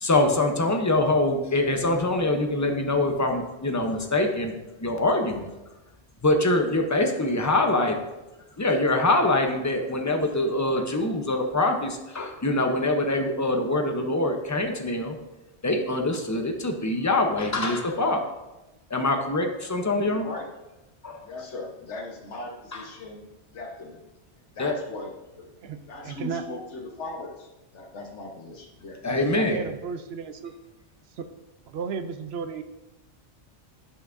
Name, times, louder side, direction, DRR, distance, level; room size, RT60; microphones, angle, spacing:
voice 1, 0.0-5.5 6.2-8.0 8.6-15.2 15.6-18.2 18.9-20.2 21.0-21.2 22.7-22.8 24.6-24.7 29.0-29.7, left 2 dB, 20° left, 4 dB, 0.6 m, -24 dB
voice 2, 20.0-20.5 21.2-23.3 23.5-24.0 24.5-25.5 25.9-29.0, left 2 dB, 85° left, 2 dB, 1.4 m, -39 dB
voice 3, 25.6-26.4 29.2-30.5 31.2-31.3 31.7-32.6, right 6 dB, 70° right, 9 dB, 0.8 m, -34 dB
11.0 x 5.7 x 2.6 m, 1.0 s
omnidirectional pair, 1.2 m